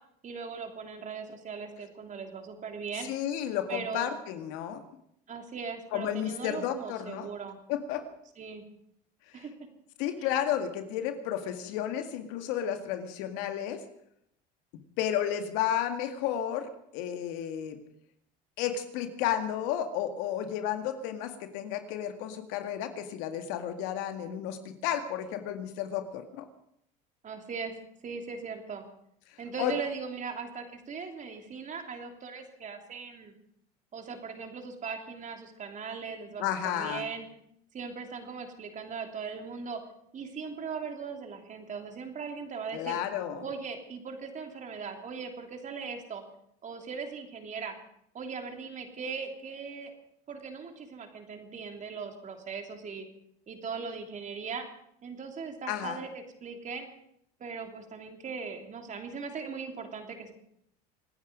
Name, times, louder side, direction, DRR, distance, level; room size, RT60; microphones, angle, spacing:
voice 1, 0.2-3.1 3.7-4.1 5.3-7.6 8.4-8.6 9.3-9.5 10.2-10.3 27.2-27.7 28.0-28.8 29.4-33.3 33.9-37.3 37.7-39.8 40.1-43.0 43.4-46.2 46.6-47.7 48.1-49.9 50.3-53.1 53.5-54.7 55.0-56.9 57.4-60.3, right 5 dB, 35° right, 4 dB, 3.1 m, -39 dB
voice 2, 3.0-4.8 5.9-7.3 7.7-8.1 10.0-13.8 14.7-17.8 18.6-26.5 29.6-29.7 36.4-37.0 42.7-43.5 55.7-56.0, left 10 dB, 75° left, 7 dB, 2.1 m, -32 dB
26.5 x 9.9 x 5.2 m, 0.73 s
supercardioid pair, 95°, 21 cm